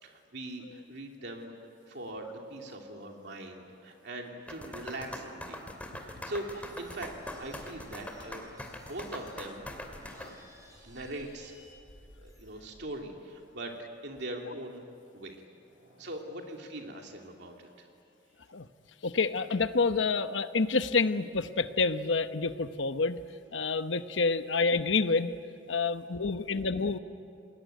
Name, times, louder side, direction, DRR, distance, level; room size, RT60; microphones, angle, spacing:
voice 1, 0.0-1.5 1.9-5.6 6.0-7.1 7.4-8.4 8.9-9.6 10.1-10.3 10.8-11.5 12.2-13.7 14.0-14.8 15.1-15.4 16.0-17.9, right 1 dB, 65° right, 1 dB, 2.9 m, -41 dB
sound 1, 4.5-10.3, left 1 dB, 10° left, 2.7 m, -42 dB
sound 2, 6.3-13.1, equal, 20° right, 6.5 m, -56 dB
voice 2, 9.6-10.2 15.4-16.2 18.2-18.5 25.9-26.8, right 1 dB, 40° right, 2 dB, 6.2 m, -65 dB
voice 3, 19.0-23.2 23.5-25.3 25.7-27.0, left 4 dB, 85° left, 10 dB, 1.0 m, -28 dB
28.5 x 21.0 x 9.3 m, 2.5 s
head